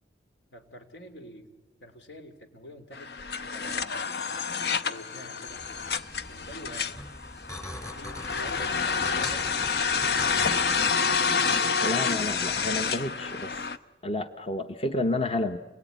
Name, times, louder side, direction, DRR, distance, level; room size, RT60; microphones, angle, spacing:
voice 1, 0.5-1.5 1.8-3.1 3.5-4.0 4.3-4.4 4.7-5.6 6.3-7.0 7.9-10.9 12.7-13.2, equal, 80° left, 7 dB, 3.0 m, -47 dB
sound 1, 2.9-13.8, left 5 dB, 65° left, 0.9 m, -28 dB
sound 2, 5.5-10.9, left 1 dB, 15° left, 2.2 m, -41 dB
voice 2, 11.8-13.7 14.0-15.6, left 1 dB, 30° left, 7 dB, 0.9 m, -30 dB
29.0 x 22.0 x 9.3 m, 1.2 s
head